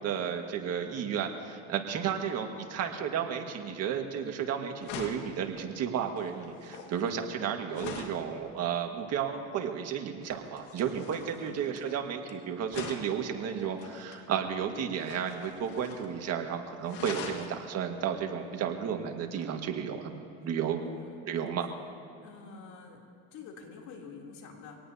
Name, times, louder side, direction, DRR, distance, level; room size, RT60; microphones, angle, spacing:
voice 1, 0.0-20.1 20.4-20.8 21.3-21.7, right 8 dB, 50° right, 4 dB, 1.8 m, -33 dB
voice 2, 2.0-2.4 11.4-11.7 20.8-21.2 22.2-23.0 23.3-24.8, left 5 dB, 60° left, -1 dB, 3.2 m, -48 dB
sound 1, 4.3-4.4 4.8-8.3 10.2-12.3 12.7-14.2 15.0-16.2 16.4-16.5 16.8-17.5 19.4-19.5, left 5 dB, 80° left, 2.0 m, -43 dB
24.5 x 18.5 x 2.8 m, 2.5 s
supercardioid pair, 100°, 32 cm